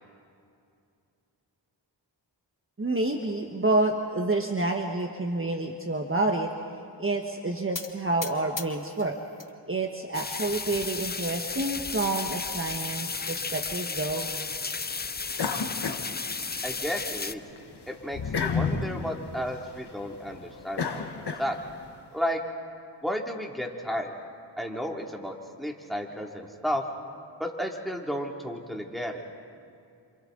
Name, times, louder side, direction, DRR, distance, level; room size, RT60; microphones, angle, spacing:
voice 1, 2.8-6.5 7.0-9.2 9.7-14.3, right 2 dB, 30° right, 2 dB, 1.4 m, -28 dB
sound 1, 7.7-9.5 9.9-10.5 11.1-11.2 11.5-11.6 12.0-12.1 13.2-13.8, left 4 dB, 45° left, 1.6 m, -40 dB
sound 2, 10.1-17.3, left 4 dB, 25° left, 0.6 m, -34 dB
sound 3, 15.4-16.9 17.3-21.9, left 5 dB, 65° left, 1.4 m, -32 dB
voice 2, 16.6-17.4 17.9-21.6 22.1-22.4 23.0-24.1 24.6-26.8 27.4-29.2, equal, ahead, 0 dB, 2.7 m, -33 dB
29.5 x 27.5 x 4.0 m, 2.4 s
cardioid pair, 60°, 42 cm